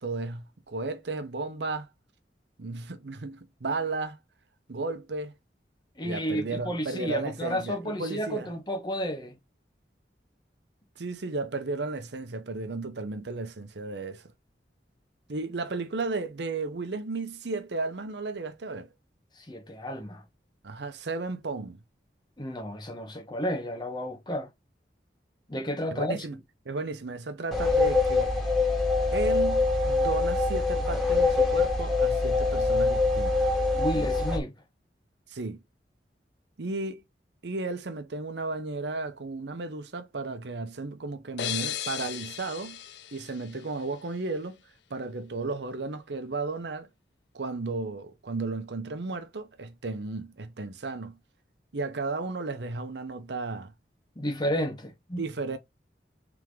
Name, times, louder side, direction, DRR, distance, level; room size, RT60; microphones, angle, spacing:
voice 1, 0.0-1.9 2.6-4.2 4.7-5.3 6.0-8.5 11.0-14.3 15.3-18.9 20.6-21.8 25.9-26.4 26.6-28.3 29.1-33.5 35.3-35.6 36.6-37.0 37.4-42.8 43.1-44.6 44.9-46.9 47.3-51.2 51.7-53.7 55.2-55.6, right 3 dB, 80° right, 0.8 m, -34 dB
voice 2, 6.0-9.3 19.5-20.2 22.4-24.5 25.5-26.2 33.7-34.5 54.2-55.2, equal, 25° left, 1.0 m, -32 dB
sound 1, 27.5-34.4, left 3 dB, ahead, 1.4 m, -24 dB
sound 2, 41.4-44.1, left 10 dB, 85° left, 0.5 m, -36 dB
3.7 x 3.5 x 3.1 m
head